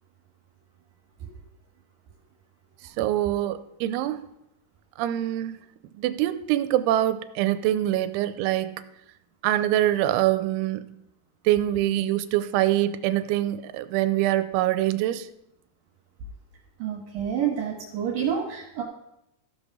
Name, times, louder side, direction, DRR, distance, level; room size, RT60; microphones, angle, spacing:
voice 1, 3.0-4.3 5.0-5.6 6.0-8.9 9.4-10.9 11.5-15.3, right 13 dB, 85° right, 12 dB, 3.0 m, -24 dB
voice 2, 16.8-18.8, right 8 dB, 60° right, 0 dB, 2.8 m, -28 dB
15.0 x 5.4 x 6.1 m, 0.82 s
omnidirectional pair, 5.4 m